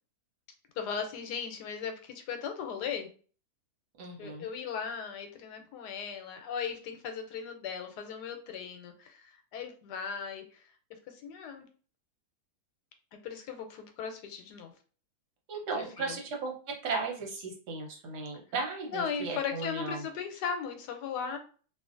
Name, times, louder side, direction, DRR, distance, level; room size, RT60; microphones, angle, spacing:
voice 1, 0.8-3.1 4.2-10.6 11.1-11.6 13.2-14.7 15.7-16.2 18.9-21.4, left 6 dB, 80° left, 6 dB, 1.2 m, -37 dB
voice 2, 4.0-4.5 15.5-16.5 16.8-20.0, right 3 dB, 80° right, 0 dB, 1.4 m, -36 dB
2.7 x 2.5 x 2.4 m, 0.40 s
omnidirectional pair, 1.8 m